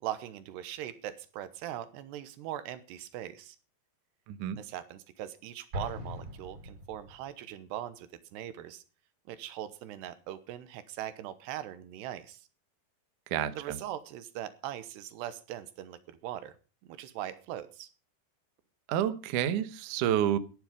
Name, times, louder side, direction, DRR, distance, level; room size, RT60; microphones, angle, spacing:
voice 1, 0.0-3.6 4.6-8.8 9.3-12.5 13.5-16.6 16.9-17.9, right 12 dB, 80° right, 13 dB, 3.2 m, -40 dB
Explosion, 5.7-7.4, left 1 dB, 30° right, 3.7 m, -41 dB
voice 2, 13.3-13.8 18.9-20.4, right 10 dB, 65° right, 10 dB, 2.2 m, -29 dB
15.0 x 10.5 x 5.2 m, 0.35 s
omnidirectional pair, 4.8 m